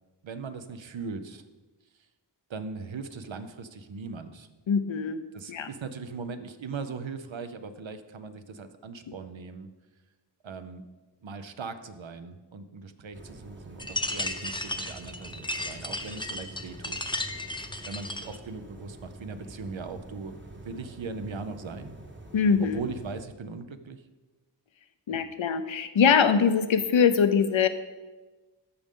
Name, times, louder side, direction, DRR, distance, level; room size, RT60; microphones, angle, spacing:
voice 1, 0.2-1.4 2.5-4.5 5.3-9.7 10.4-10.8 11.2-17.0 17.9-22.0 22.6-24.0 25.1-25.2, right 4 dB, 90° right, 9 dB, 0.7 m, -39 dB
voice 2, 4.7-5.2 5.5-5.7 22.3-22.8 25.1-27.7, left 6 dB, 90° left, 10 dB, 0.6 m, -22 dB
sound 1, 13.1-23.2, right 1 dB, 25° right, 0.9 m, -46 dB
sound 2, 13.8-18.4, left 1 dB, 10° left, 0.6 m, -34 dB
13.5 x 5.2 x 3.7 m, 1.2 s
wide cardioid pair, 45°, 45 cm